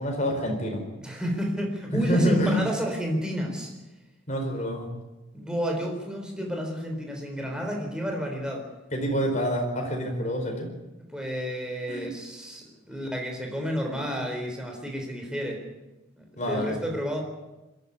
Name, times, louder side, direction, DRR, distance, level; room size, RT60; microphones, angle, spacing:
voice 1, 0.0-0.8 1.9-2.7 4.3-4.9 8.9-10.7 11.9-12.1 16.4-16.8, equal, 35° left, 2 dB, 4.7 m, -26 dB
voice 2, 1.0-3.7 5.3-8.7 11.0-15.6 16.2-17.2, equal, 5° right, 2 dB, 3.9 m, -31 dB
21.5 x 14.0 x 9.6 m, 1.1 s
head